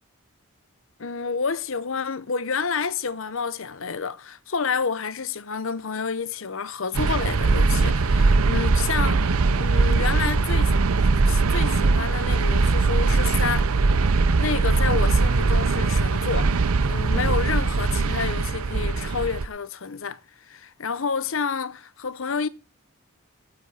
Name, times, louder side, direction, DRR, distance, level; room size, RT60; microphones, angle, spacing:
voice 1, 1.0-10.7 11.2-13.7 14.4-20.2 20.5-22.5, left 5 dB, 65° left, 0.7 m, -29 dB
sound 1, 6.9-19.5, right 3 dB, 85° right, 0.7 m, -21 dB
9.1 x 8.5 x 8.4 m
head